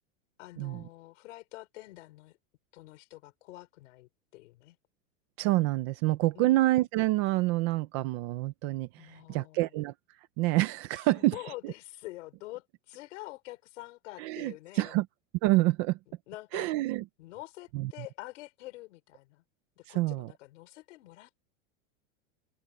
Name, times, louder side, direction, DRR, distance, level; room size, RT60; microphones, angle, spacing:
voice 1, 0.4-2.4 2.7-4.8 6.3-6.6 9.0-9.7 11.0-15.0 16.3-16.7 17.2-19.4 19.8-21.4, left 18 dB, 65° left, 4.2 m, -46 dB
voice 2, 5.4-9.9 10.4-11.3 11.6-11.7 14.2-15.1 15.4-16.0 16.5-17.0 17.7-17.9 19.9-20.3, right 18 dB, 25° right, 0.4 m, -27 dB
supercardioid pair, 165°, 40 cm